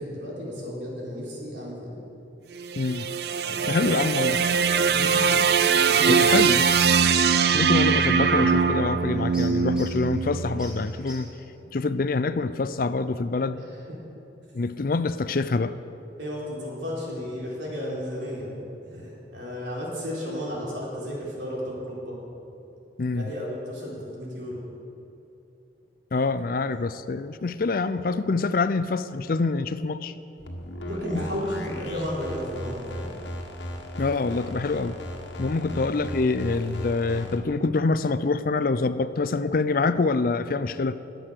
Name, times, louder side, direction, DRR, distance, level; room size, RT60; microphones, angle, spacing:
voice 1, 0.0-2.0 3.4-3.9 4.8-5.2 5.7-6.4 13.5-13.8 16.2-18.6 18.9-22.1 23.1-24.6 30.9-33.1 35.7-35.9, equal, 75° right, -4 dB, 4.1 m, -33 dB
sound 1, 2.6-10.9, right 6 dB, 60° right, 0.5 m, -22 dB
voice 2, 2.8-3.1 3.7-4.4 6.1-6.6 7.5-11.3 11.7-13.6 14.5-15.8 23.0-23.2 26.1-30.1 34.0-35.0 35.4-41.0, left 3 dB, 50° left, 13 dB, 0.4 m, -25 dB
sound 2, 5.9-11.2, left 1 dB, 5° right, 3.6 m, -48 dB
sound 3, 30.4-37.4, equal, 70° left, 1.5 m, -37 dB
21.0 x 7.8 x 6.5 m, 2.9 s
head